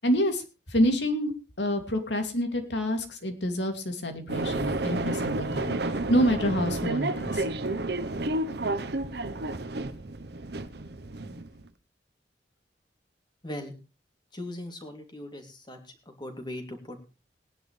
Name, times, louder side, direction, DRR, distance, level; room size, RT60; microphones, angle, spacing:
voice 1, 0.0-1.3 1.6-7.4, equal, 75° left, 5 dB, 2.7 m, -27 dB
sound 1, 4.3-11.7, right 2 dB, 65° right, 0.9 m, -31 dB
voice 2, 13.4-13.7 14.3-15.8 16.1-17.0, left 1 dB, 25° left, 5 dB, 2.8 m, -39 dB
19.5 x 10.5 x 3.3 m, 0.30 s
head